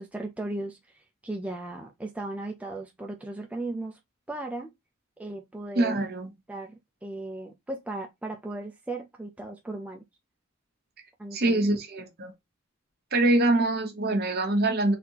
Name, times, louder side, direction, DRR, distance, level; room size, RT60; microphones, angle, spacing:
voice 1, 0.0-4.0 4.3-4.7 5.2-6.0 6.5-10.0 11.2-11.6, right 2 dB, 5° right, 0.4 m, -36 dB
voice 2, 5.8-6.3 11.3-12.3 13.1-15.0, right 2 dB, 50° right, 1.1 m, -24 dB
4.1 x 2.8 x 2.8 m
head